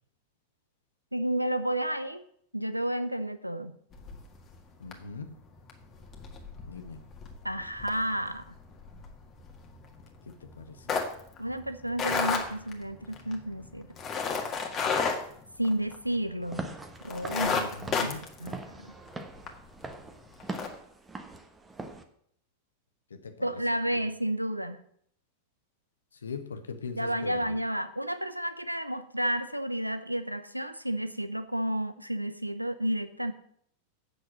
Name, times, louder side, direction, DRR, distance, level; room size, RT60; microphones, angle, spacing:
voice 1, 1.1-2.2 2.5-3.8 7.4-8.5 11.4-13.9 15.6-16.7 17.0-17.7 18.0-18.1 18.4-19.0 23.4-24.8 27.0-33.3, right 1 dB, 90° right, 11 dB, 0.7 m, -31 dB
sound 1, 3.9-4.6 4.9-5.2 5.5-16.3 16.6-16.7 17.0-19.5 19.9-20.0 20.4-20.7, left 5 dB, 25° left, 1.7 m, -33 dB
voice 2, 4.8-5.3 6.7-7.0 10.3-11.0 17.6-18.2 23.1-23.6 23.9-24.0 26.2-27.6, left 5 dB, 70° left, 8 dB, 1.2 m, -41 dB
Walk footsteps / Siren, 16.4-22.0, right 2 dB, 10° right, 1.1 m, -42 dB
8.3 x 6.4 x 7.5 m, 0.66 s
figure-of-eight pair, 90°, 0 cm